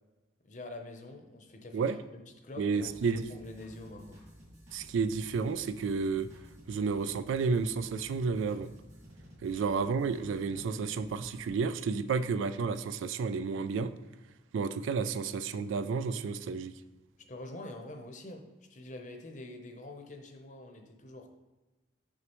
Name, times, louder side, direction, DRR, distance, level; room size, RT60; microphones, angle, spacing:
voice 1, 0.4-4.2 9.5-9.7 17.3-21.3, left 2 dB, 40° left, 0.7 m, -46 dB
voice 2, 2.6-3.3 4.7-6.3 6.7-8.7 9.4-13.9 14.5-16.7, right 5 dB, 80° right, 0.3 m, -31 dB
sound 1, 2.8-11.5, equal, 35° right, 1.7 m, -54 dB
6.4 x 5.9 x 3.0 m
head